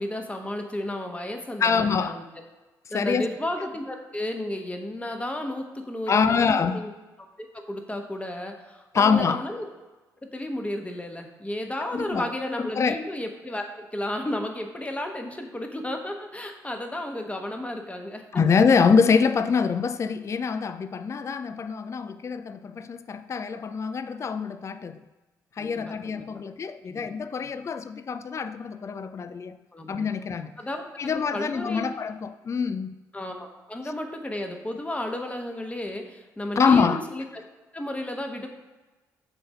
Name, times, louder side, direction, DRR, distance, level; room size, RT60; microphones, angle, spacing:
voice 1, 0.0-2.2 2.9-6.9 7.4-9.6 10.3-18.2 25.6-26.2 26.9-27.1 27.4-27.5 29.7-30.0 30.6-31.9 33.1-37.2 37.7-38.5, left 1 dB, 15° left, 1.1 m, -33 dB
voice 2, 1.6-2.2 2.9-3.3 6.1-6.8 8.9-9.4 11.8-12.3 12.6-13.0 18.3-25.0 25.6-29.6 29.9-30.6 31.0-32.9 36.6-37.0, left 5 dB, 30° left, 0.4 m, -24 dB
5.8 x 3.9 x 5.3 m
hypercardioid pair, 45°, 9 cm